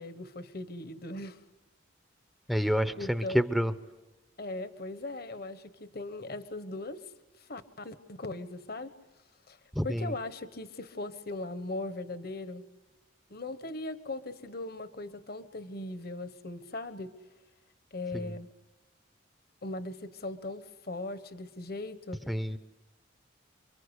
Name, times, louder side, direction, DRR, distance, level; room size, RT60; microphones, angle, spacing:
voice 1, 0.0-1.4 2.5-3.4 4.4-7.1 7.4-8.9 9.5-9.6 9.8-12.6 13.3-17.1 17.9-18.5 19.6-22.4, left 2 dB, 50° left, 12 dB, 1.3 m, -39 dB
voice 2, 2.5-3.7 9.8-10.0 22.3-22.6, equal, ahead, 10 dB, 0.8 m, -28 dB
29.0 x 23.0 x 8.2 m, 1.1 s
head